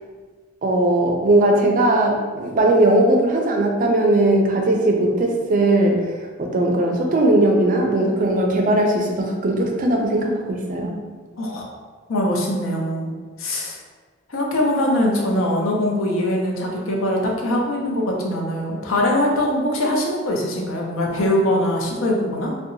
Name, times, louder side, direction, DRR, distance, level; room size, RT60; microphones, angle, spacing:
voice 1, 0.6-6.0 6.4-11.0, right 1 dB, 45° right, 1 dB, 0.4 m, -18 dB
voice 2, 11.4-11.7 12.1-13.1 13.4-13.8 14.3-22.5, left 1 dB, 90° left, -1 dB, 0.5 m, -22 dB
2.7 x 2.1 x 2.5 m, 1.5 s
head